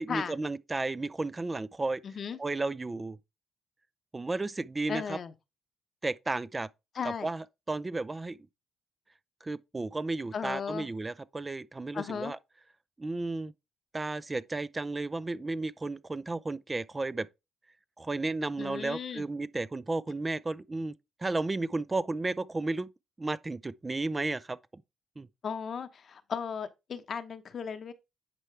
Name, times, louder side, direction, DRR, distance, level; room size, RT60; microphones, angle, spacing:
voice 1, 0.0-2.0 2.4-3.2 4.1-5.2 6.0-6.7 7.0-8.4 9.4-12.4 13.0-13.5 13.9-17.3 18.0-20.9 21.2-22.9 23.2-24.6 25.2-25.3, right 2 dB, 20° right, 0.4 m, -33 dB
voice 2, 2.0-2.4 4.9-5.3 6.9-7.3 10.3-10.9 11.9-12.3 18.6-19.2 25.4-27.9, left 6 dB, 50° left, 0.9 m, -36 dB
9.8 x 4.5 x 3.3 m
cardioid pair, 90°, 0 cm